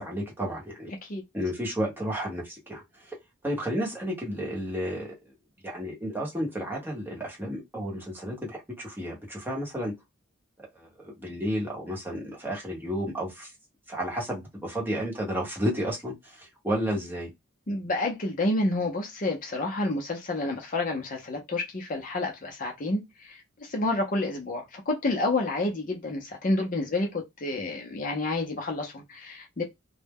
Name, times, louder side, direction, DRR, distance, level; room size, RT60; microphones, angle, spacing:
voice 1, 0.0-0.9 1.3-3.1 3.4-5.1 5.6-9.9 10.7-13.5 13.9-17.3, equal, 10° right, 0.8 m, -32 dB
voice 2, 17.7-29.6, left 2 dB, 40° left, 0.5 m, -29 dB
2.1 x 2.0 x 3.3 m
head